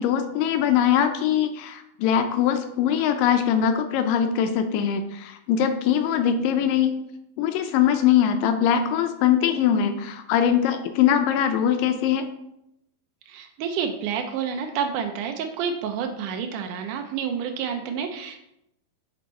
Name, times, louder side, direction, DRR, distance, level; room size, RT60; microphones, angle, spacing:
voice 1, 0.0-7.0 7.4-12.3, left 9 dB, 80° left, 7 dB, 2.0 m, -22 dB
voice 2, 13.3-18.4, right 7 dB, 90° right, 5 dB, 1.8 m, -29 dB
6.8 x 4.2 x 4.2 m, 0.81 s
omnidirectional pair, 4.3 m